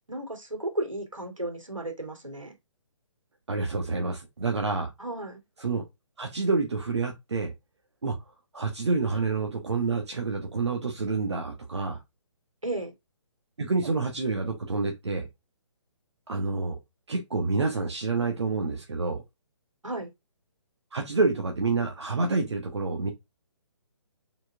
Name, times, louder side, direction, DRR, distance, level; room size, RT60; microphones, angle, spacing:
voice 1, 0.1-2.5 5.0-5.4 12.6-12.9 19.8-20.1, right 1 dB, 85° right, 2.9 m, -34 dB
voice 2, 3.5-4.9 5.6-5.8 6.2-7.5 8.0-8.2 8.5-12.0 13.6-15.3 16.3-16.8 17.1-19.2 20.9-23.1, right 3 dB, 60° right, 1.3 m, -28 dB
6.5 x 4.3 x 3.5 m
figure-of-eight pair, 140°, 16 cm